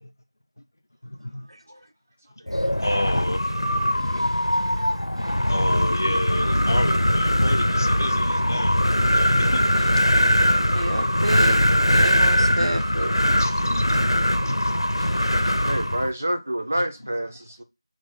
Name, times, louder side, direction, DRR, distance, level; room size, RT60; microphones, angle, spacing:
voice 1, 1.0-1.4 2.8-4.4 5.5-8.9 9.1-9.6 10.8-10.9 12.6-12.9 13.4-14.0 14.5-14.8 15.2-15.3, left 1 dB, 40° left, 0.5 m, -30 dB
Wind, 2.5-16.1, equal, 90° left, 0.6 m, -21 dB
voice 2, 3.9-4.9 5.2-5.3 10.4-13.1 13.4-13.5 15.0-15.7, right 1 dB, 75° right, 0.5 m, -32 dB
voice 3, 15.7-17.6, right 1 dB, 20° right, 0.4 m, -27 dB
3.0 x 2.1 x 4.2 m
figure-of-eight pair, 175°, 3 cm